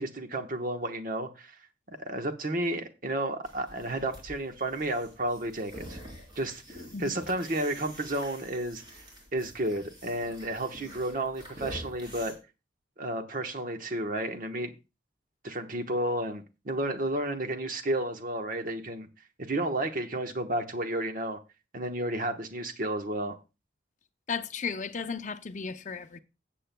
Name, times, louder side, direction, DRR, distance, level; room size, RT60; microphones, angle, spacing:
voice 1, 0.0-1.6 1.9-6.0 6.4-8.8 9.3-12.3 13.0-14.7 15.4-19.1 19.5-21.4 21.7-23.4, right 1 dB, 50° right, 1.1 m, -32 dB
sound 1, 3.4-12.3, equal, 25° right, 3.8 m, -47 dB
voice 2, 24.3-26.2, left 5 dB, 40° left, 0.6 m, -35 dB
17.0 x 7.6 x 2.2 m
head